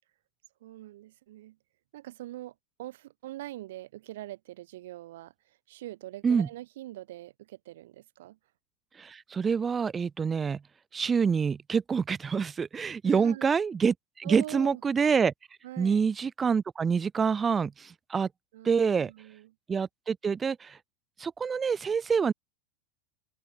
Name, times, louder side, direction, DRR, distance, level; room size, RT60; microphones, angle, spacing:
voice 1, 0.6-1.6 1.9-8.4 13.0-13.5 14.2-14.8 15.6-16.0 18.5-19.5, right 15 dB, 70° right, 5.8 m, -43 dB
voice 2, 9.0-10.6 10.9-15.3 15.8-18.3 18.6-19.1 19.7-20.8 21.2-22.3, right 6 dB, 15° right, 0.6 m, -26 dB
open air
supercardioid pair, 160°, 0 cm